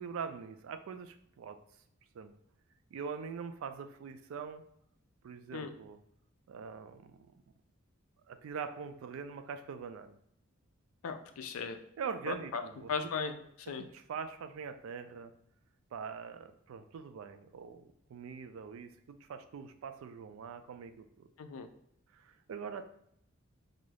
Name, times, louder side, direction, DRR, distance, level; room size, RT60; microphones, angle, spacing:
voice 1, 0.0-1.6 2.1-2.3 2.9-4.6 5.2-6.0 6.5-7.4 8.3-10.2 12.0-12.9 13.8-15.3 15.9-21.3 22.1-22.9, right 6 dB, 75° right, 9 dB, 0.3 m, -43 dB
voice 2, 11.0-11.8 12.3-13.9 21.4-21.7, left 5 dB, 85° left, 8 dB, 0.4 m, -38 dB
2.5 x 2.3 x 3.3 m, 0.72 s
head